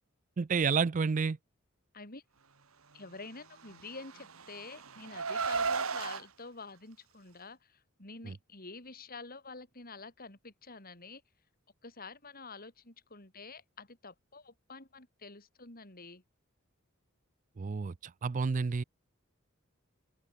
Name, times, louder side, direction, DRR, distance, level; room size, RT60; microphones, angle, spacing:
voice 1, 0.4-1.4 8.3-8.4 17.6-18.8, right 5 dB, 35° right, 0.4 m, -30 dB
voice 2, 2.9-11.2 11.8-16.2, left 3 dB, 45° left, 4.9 m, -48 dB
Car, 3.7-6.2, right 5 dB, 85° right, 1.9 m, -34 dB
open air
head